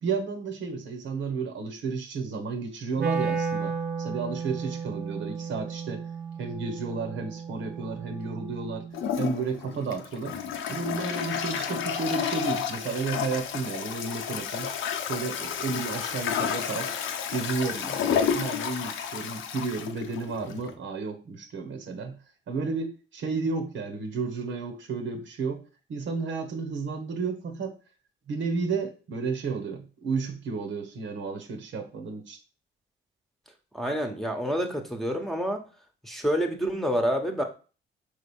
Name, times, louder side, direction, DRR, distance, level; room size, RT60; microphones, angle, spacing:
voice 1, 0.0-6.1 6.4-8.9 9.2-10.4 10.7-14.7 15.0-16.9 17.3-22.2 22.5-25.6 25.9-27.8 28.3-32.4, right 4 dB, 70° right, 1.4 m, -32 dB
Wind instrument woodwind instrument, 3.0-9.0, right 5 dB, 55° right, 0.9 m, -33 dB
Toilet flush, 8.9-20.7, left 8 dB, 85° left, 0.9 m, -31 dB
voice 2, 33.7-35.6 36.0-37.4, equal, ahead, 1.2 m, -28 dB
5.0 x 3.7 x 5.5 m
cardioid pair, 90°, 20 cm